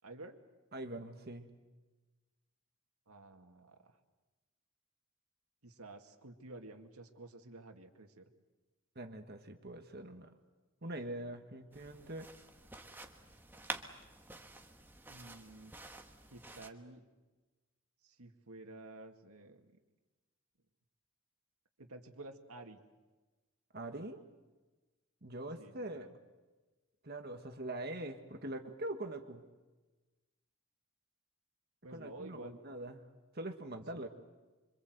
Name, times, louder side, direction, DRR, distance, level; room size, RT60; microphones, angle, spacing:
voice 1, 0.0-0.4 3.1-4.0 5.6-8.3 15.1-15.7 16.3-17.0 18.0-19.7 21.8-22.8 25.6-26.2 31.8-32.6 33.9-34.1, right 2 dB, 85° right, 5 dB, 2.2 m, -51 dB
voice 2, 0.7-1.5 8.9-10.3 10.8-12.3 23.7-24.2 25.2-26.1 27.0-29.4 31.9-33.1 33.3-34.1, right 1 dB, 45° right, 6 dB, 1.5 m, -43 dB
sound 1, 11.7-16.7, right 2 dB, 10° right, 1.3 m, -48 dB
26.0 x 25.0 x 8.0 m, 1.2 s
head